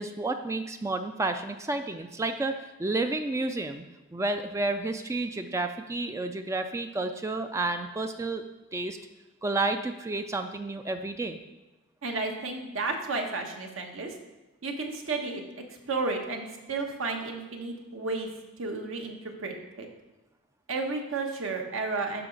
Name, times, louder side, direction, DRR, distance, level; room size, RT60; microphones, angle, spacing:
voice 1, 0.0-3.8 4.1-8.4 8.7-9.0 9.4-11.4, right 2 dB, 15° right, 7 dB, 0.3 m, -31 dB
voice 2, 12.0-14.1 14.6-15.4 15.9-18.3 18.6-19.9 20.7-22.3, right 3 dB, 70° right, 3 dB, 1.1 m, -32 dB
11.5 x 5.0 x 3.9 m, 1.1 s
head